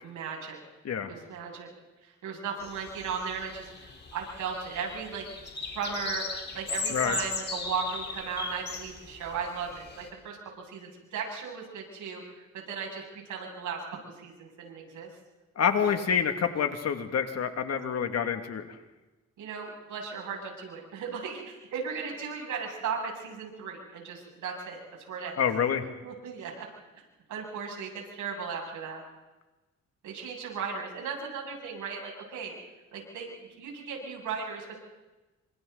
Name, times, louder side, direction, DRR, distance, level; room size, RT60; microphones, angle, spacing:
voice 1, 0.0-0.6 1.1-1.7 2.0-5.3 5.7-15.1 15.8-16.0 19.4-24.8 25.1-25.4 26.0-26.7 27.3-29.0 30.0-32.5 32.9-34.8, right 6 dB, 80° right, -1 dB, 7.5 m, -36 dB
sound 1, 2.6-10.1, left 4 dB, 35° left, 4.1 m, -38 dB
voice 2, 15.6-18.6 25.4-25.8, left 7 dB, 55° left, 6 dB, 2.4 m, -27 dB
28.0 x 26.0 x 4.1 m, 1.1 s
cardioid pair, 90°, 30 cm